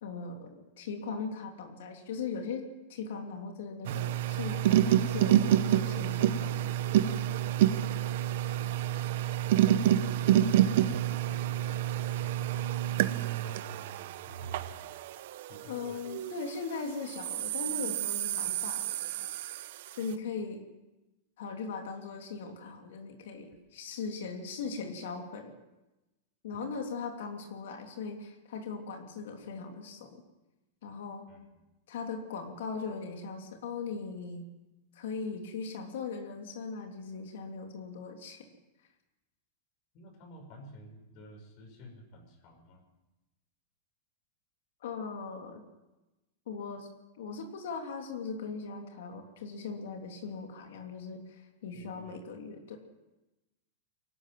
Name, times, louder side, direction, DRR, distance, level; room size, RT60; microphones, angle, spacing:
voice 1, 0.0-6.7 15.7-19.0 19.9-20.6 21.4-25.5 26.4-30.2 30.8-31.2 31.9-34.5 34.9-38.4 44.8-45.6 46.5-46.9 47.2-52.8, left 5 dB, 75° left, 3 dB, 3.2 m, -39 dB
sound 1, 3.8-16.5 17.1-19.9, right 11 dB, 65° right, 0.9 m, -28 dB
voice 2, 10.0-12.9 13.3-14.9 15.5-16.0 26.5-26.7 31.3-31.6 39.9-42.8 51.7-52.2, left 1 dB, 45° left, 5 dB, 6.0 m, -52 dB
23.5 x 12.5 x 9.4 m, 1.0 s
supercardioid pair, 150°, 0 cm